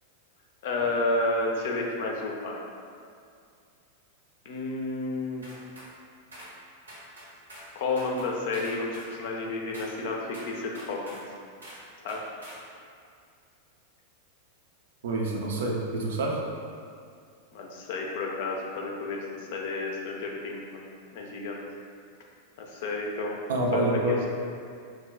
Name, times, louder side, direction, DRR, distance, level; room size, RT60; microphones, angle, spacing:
voice 1, 0.6-2.6 4.4-5.5 7.7-11.2 12.0-12.3 17.5-20.8 21.1-21.6 22.6-23.4 23.7-24.3, left 2 dB, 50° left, -1 dB, 0.5 m, -31 dB
sound 1, 5.4-5.9 6.3-6.5 6.9-7.7 8.0-9.1 9.7-9.9 10.3-11.3 11.6-11.8 12.1-12.6, right 1 dB, 80° right, 0.8 m, -46 dB
voice 2, 15.0-16.4 23.5-24.1, right 1 dB, 60° right, -1 dB, 0.5 m, -27 dB
3.1 x 2.1 x 3.6 m, 2.3 s
figure-of-eight pair, 90°, 0 cm